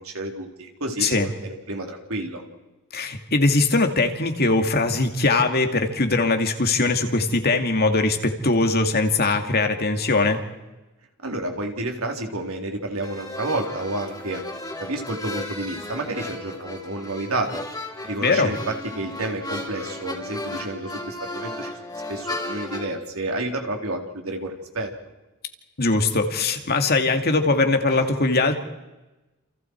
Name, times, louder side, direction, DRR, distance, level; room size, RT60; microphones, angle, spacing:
voice 1, 0.0-2.4 11.2-14.4 14.8-17.6 18.0-24.9 27.9-28.1, right 2 dB, 70° right, 2 dB, 3.9 m, -30 dB
voice 2, 2.9-10.4 18.2-18.5 25.8-28.6, left 3 dB, 45° left, 5 dB, 2.4 m, -21 dB
sound 1, 13.0-23.0, left 1 dB, 20° left, 3.6 m, -35 dB
29.0 x 28.5 x 4.7 m, 1.1 s
head